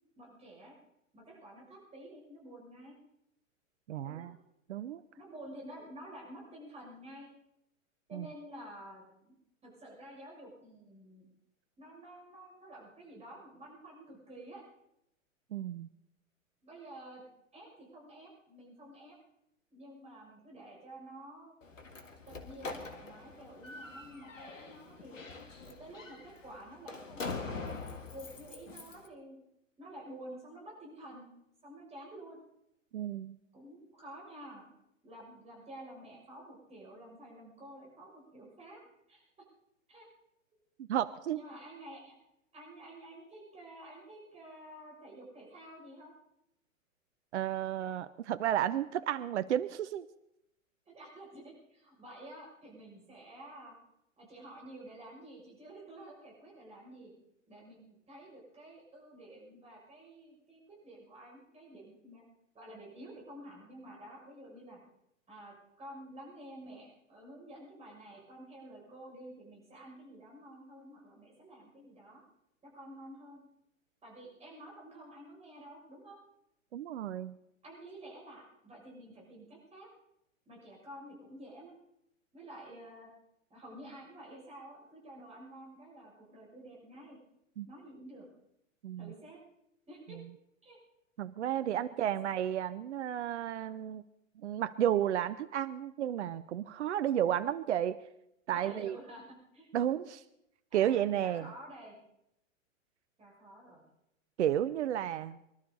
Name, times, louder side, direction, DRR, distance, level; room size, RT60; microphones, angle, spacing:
voice 1, 0.2-0.8 1.1-3.0 4.0-4.3 5.1-7.3 8.1-9.3 9.6-11.3 11.8-14.6 16.6-17.2 17.5-19.1 19.7-21.5 22.3-25.2 25.6-29.4 29.8-31.3 31.6-32.4 33.5-34.7 35.0-38.8 39.1-39.4 39.9-40.1 41.3-42.1 42.5-46.1 50.9-53.7 54.2-57.1 57.5-62.2 62.5-64.8 65.3-72.2 72.6-73.4 74.0-76.2 77.6-79.9 80.4-81.7 82.3-83.1 83.5-87.2 87.7-88.3 89.0-89.4 89.9-90.2 90.6-90.8 91.6-91.7 92.0-92.2 98.5-99.2 99.5-99.7 100.7-101.9 103.2-103.8, right 1 dB, 15° right, -3 dB, 6.8 m, -50 dB
voice 2, 3.9-4.4 4.7-5.0 8.1-8.3 15.5-15.9 32.9-33.4 40.8-41.4 47.3-50.1 76.7-77.4 87.6-87.7 88.8-89.1 90.1-90.2 91.2-94.0 94.4-98.0 98.5-99.0 99.7-100.2 100.7-101.5 104.4-105.4, right 11 dB, 60° right, 14 dB, 0.7 m, -32 dB
Slam, 21.6-29.1, left 4 dB, 70° left, 1.9 m, -44 dB
24.5 x 12.0 x 4.0 m, 0.81 s
figure-of-eight pair, 100°, 40 cm